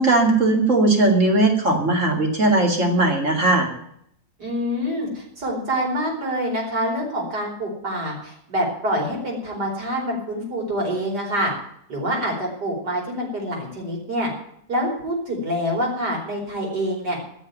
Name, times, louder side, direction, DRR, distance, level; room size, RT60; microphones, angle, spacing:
voice 1, 0.0-3.7, right 2 dB, 50° right, 2 dB, 2.9 m, -18 dB
voice 2, 4.4-11.5 11.9-14.3 14.7-17.2, equal, 80° right, -1 dB, 5.3 m, -26 dB
16.5 x 6.7 x 9.3 m, 0.71 s
omnidirectional pair, 1.7 m